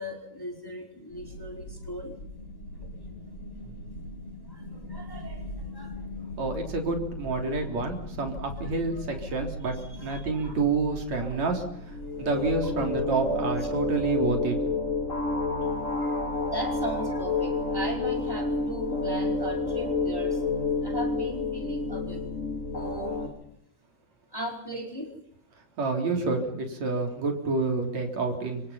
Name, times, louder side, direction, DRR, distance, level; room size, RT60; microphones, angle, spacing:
voice 1, 0.0-2.1 3.6-3.7 4.5-5.4 5.7-6.0 8.9-9.2 9.7-10.5 11.2-11.6 12.3-12.5 12.8-12.9 15.9-22.2 22.7-23.3 24.3-25.1, equal, 5° left, 1 dB, 4.6 m, -38 dB
sound 1, 1.1-20.5, equal, 55° left, 9.0 m, -42 dB
voice 2, 6.4-14.6 25.8-28.6, right 3 dB, 65° right, 3 dB, 4.8 m, -28 dB
sound 2, 11.7-23.3, left 3 dB, 25° left, 4.4 m, -29 dB
28.5 x 25.5 x 5.7 m, 0.72 s
omnidirectional pair, 3.3 m